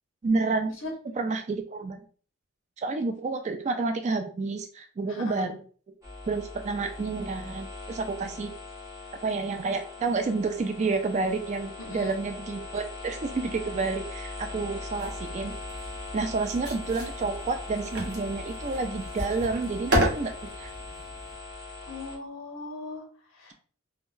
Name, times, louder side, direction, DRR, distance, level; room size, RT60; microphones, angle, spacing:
voice 1, 0.2-0.7 1.2-2.0 2.8-5.6 6.3-8.5 9.2-15.5 16.1-20.7, right 3 dB, 30° right, 6 dB, 0.3 m, -29 dB
voice 2, 5.1-5.5 11.8-12.2 21.8-23.5, left 3 dB, 60° left, -1 dB, 1.2 m, -39 dB
sound 1, 6.0-22.2, left 2 dB, 15° right, 0.8 m, -40 dB
sound 2, 15.0-21.4, equal, 50° right, 0.9 m, -33 dB
3.6 x 2.1 x 2.5 m, 0.42 s
head